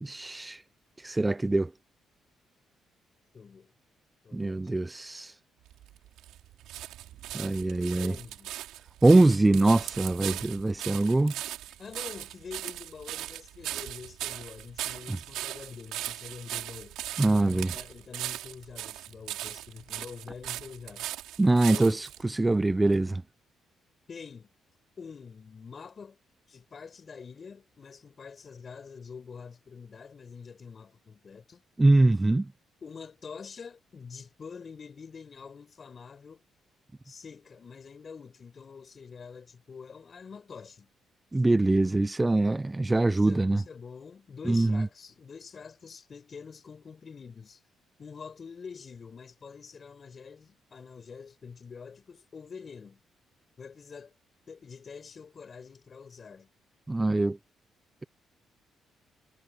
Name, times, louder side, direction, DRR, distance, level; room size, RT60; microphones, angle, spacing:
voice 1, 0.0-0.6 1.0-1.7 4.3-5.3 7.3-8.1 9.0-11.3 17.2-17.7 21.4-22.1 22.3-23.2 31.8-32.5 41.3-43.6 44.5-44.9 56.9-57.4, right 2 dB, 15° right, 0.5 m, -23 dB
voice 2, 3.3-3.7 4.2-4.8 8.0-8.5 11.8-17.0 17.3-21.1 21.7-22.0 24.1-24.5 25.0-26.2 26.5-31.6 32.8-36.4 37.0-40.9 43.1-47.6 48.0-53.0 53.6-54.1 54.5-56.5, left 5 dB, 40° left, 6.2 m, -46 dB
sound 1, 5.7-22.2 22.9-23.0, right 13 dB, 90° right, 4.7 m, -39 dB
cardioid pair, 90°, 0 cm